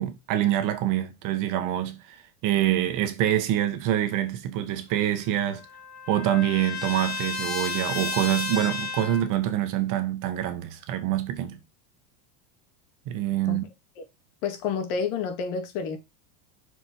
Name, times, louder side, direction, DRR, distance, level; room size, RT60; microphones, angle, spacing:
voice 1, 0.0-5.6 6.1-11.6 13.1-13.6, right 12 dB, 45° right, 1.4 m, -26 dB
Trumpet, 4.9-9.3, left 5 dB, 30° left, 3.4 m, -33 dB
voice 2, 14.4-16.0, left 6 dB, 60° left, 2.2 m, -29 dB
6.8 x 4.9 x 4.5 m
supercardioid pair, 150°, 45 cm